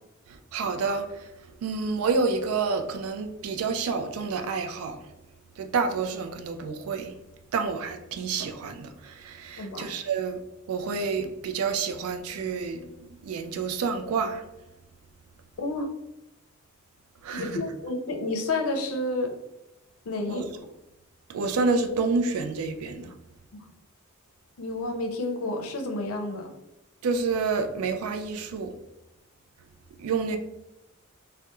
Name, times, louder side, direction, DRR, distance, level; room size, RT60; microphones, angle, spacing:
voice 1, 0.3-1.3 1.6-5.1 5.6-7.1 7.5-10.4 10.7-14.4 17.2-17.6 20.3-20.4 21.3-23.1 27.0-28.7 30.0-30.4, right 4 dB, 90° right, 0.3 m, -29 dB
voice 2, 9.6-9.9 15.6-15.9 17.3-19.3 20.1-20.4 24.6-26.5, left 2 dB, 85° left, 0.5 m, -30 dB
2.2 x 2.1 x 2.9 m
head